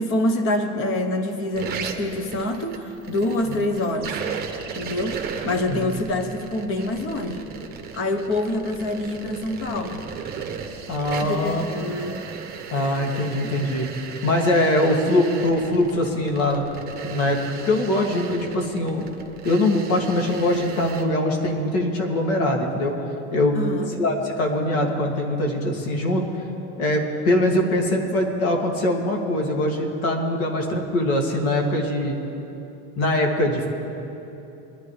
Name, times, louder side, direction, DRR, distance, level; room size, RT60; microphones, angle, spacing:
voice 1, 0.0-4.1 4.7-7.5 7.9-10.0 11.2-12.2 13.2-13.5 23.5-24.0, left 1 dB, 30° left, 7 dB, 1.2 m, -26 dB
sound 1, 1.5-21.0, right 6 dB, 25° right, 1.2 m, -36 dB
voice 2, 10.9-11.6 12.7-13.9 14.2-16.6 17.0-19.1 19.4-22.9 23.3-23.7 23.9-26.2 26.8-32.2 33.0-33.7, left 1 dB, 80° left, 0 dB, 2.7 m, -22 dB
22.0 x 11.0 x 3.4 m, 2.9 s
supercardioid pair, 150°, 41 cm